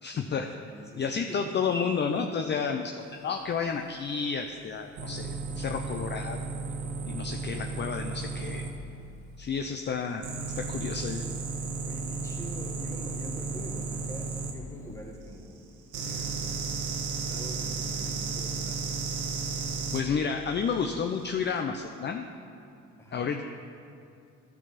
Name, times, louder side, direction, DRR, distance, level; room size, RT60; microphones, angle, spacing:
voice 1, 0.0-0.5 0.9-6.4 7.0-8.6 9.4-10.2 10.6-11.2 19.9-22.2 23.1-23.4, left 6 dB, 35° left, 5 dB, 0.5 m, -31 dB
voice 2, 0.6-1.7 11.9-18.9 23.0-23.3, equal, 10° left, -1 dB, 1.6 m, -45 dB
sound 1, 5.0-8.7 10.2-14.5 15.9-20.0 21.3-21.5, right 4 dB, 85° right, 1.2 m, -34 dB
12.0 x 4.7 x 5.7 m, 2.5 s
cardioid pair, 90°, 30 cm